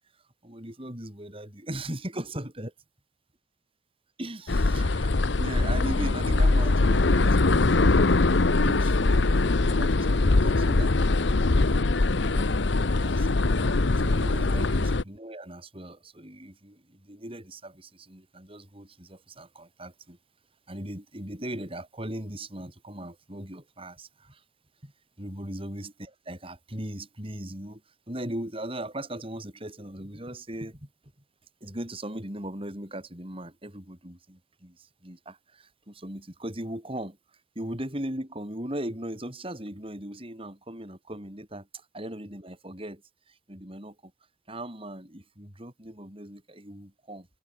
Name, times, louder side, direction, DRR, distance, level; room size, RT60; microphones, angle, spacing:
voice 1, 0.4-2.7 4.2-5.1 5.4-8.2 8.6-13.4 14.0-20.2 20.7-24.4 24.8-24.9 25.2-30.9 31.6-37.2 37.5-44.1 44.5-47.3, right 1 dB, 30° right, 6.3 m, -39 dB
sound 1, 4.5-15.0, left 2 dB, 75° left, 0.9 m, -22 dB
head